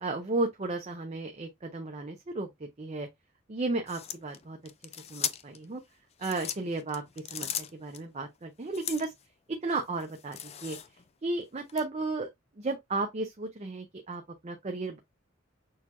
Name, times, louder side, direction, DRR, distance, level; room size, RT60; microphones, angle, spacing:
voice 1, 0.0-3.1 3.5-4.6 5.1-5.8 6.2-9.1 9.6-10.8 11.2-12.3 12.6-15.0, right 3 dB, 35° right, 0.6 m, -34 dB
sound 1, 3.9-5.6 6.1-8.0 8.7-9.2 9.7-11.1 11.7-11.8, left 9 dB, 30° left, 0.4 m, -38 dB
6.4 x 2.2 x 2.9 m
head